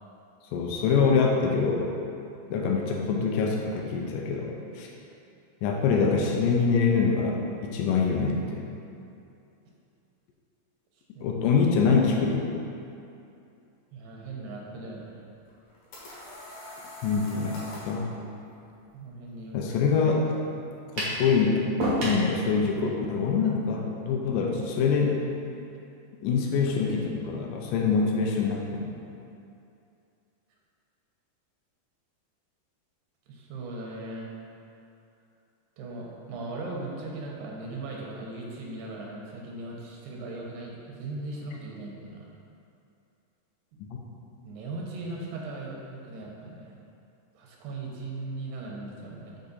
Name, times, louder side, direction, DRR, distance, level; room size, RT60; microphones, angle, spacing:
voice 1, 0.5-1.9 2.5-4.9 5.6-8.6 11.2-12.5 17.0-17.6 17.8-18.1 19.5-20.3 21.0-21.6 22.0-25.2 26.2-28.9 43.8-44.0, left 5 dB, 85° left, 0 dB, 1.9 m, -25 dB
voice 2, 13.9-15.2 18.9-19.7 33.3-34.3 35.8-42.3 44.4-46.7 47.3-49.4, right 2 dB, 90° right, -2 dB, 3.0 m, -38 dB
sound 1, 15.5-18.0, left 1 dB, 60° left, 2.2 m, -43 dB
sound 2, 21.0-21.2 21.8-22.2, right 1 dB, 55° right, 1.7 m, -27 dB
6.4 x 5.7 x 4.0 m, 2.6 s
omnidirectional pair, 4.6 m